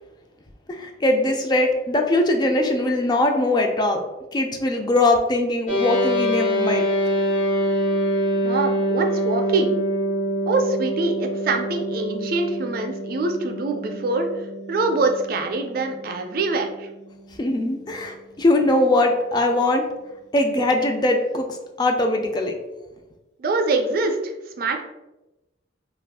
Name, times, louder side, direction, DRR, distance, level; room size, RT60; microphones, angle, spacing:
voice 1, 0.7-4.0 4.3-6.8 17.4-19.8 20.3-21.5 21.8-22.5, left 2 dB, 25° left, 3 dB, 0.3 m, -21 dB
sound 1, 5.7-17.2, equal, 70° left, 1.1 m, -25 dB
voice 2, 8.3-9.8 10.5-16.9 23.4-24.9, right 3 dB, 50° right, 4 dB, 0.4 m, -24 dB
2.4 x 2.3 x 3.4 m, 1.0 s
head